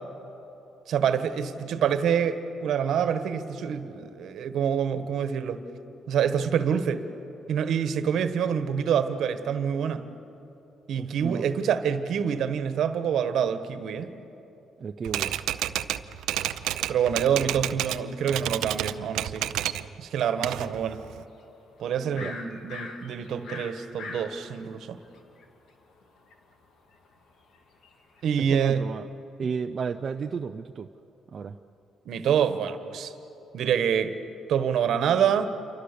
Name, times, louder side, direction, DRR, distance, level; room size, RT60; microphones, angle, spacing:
voice 1, 0.9-5.6 6.1-7.0 7.5-10.1 10.9-14.1 16.9-19.5 20.0-21.0 21.8-25.0 28.2-28.8 32.0-33.1 33.5-34.2 34.5-35.5, right 8 dB, 75° right, 10 dB, 1.4 m, -26 dB
voice 2, 11.0-11.5 14.8-15.3 22.2-22.3 28.4-29.1 29.4-30.9 31.3-31.6, right 6 dB, 45° right, 6 dB, 0.6 m, -32 dB
Typewriter, 15.0-18.0 18.3-19.9 20.2-21.2, right 13 dB, 90° right, 0.6 m, -30 dB
sound 1, 20.9-21.4 21.8-25.4 25.9-28.7, left 3 dB, 70° left, 2.8 m, -42 dB
28.0 x 24.0 x 6.9 m, 3.0 s
cardioid pair, 90°, 0 cm